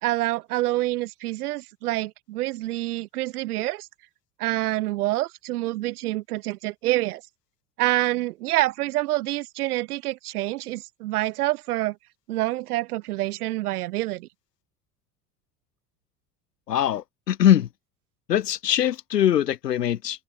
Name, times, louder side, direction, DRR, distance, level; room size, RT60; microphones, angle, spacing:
voice 1, 0.0-3.9 4.4-7.2 7.8-12.0 12.3-14.3, right 17 dB, 65° right, 2.2 m, -27 dB
voice 2, 16.7-17.7 18.3-20.2, left 10 dB, 75° left, 1.7 m, -22 dB
figure-of-eight pair, 75°, 48 cm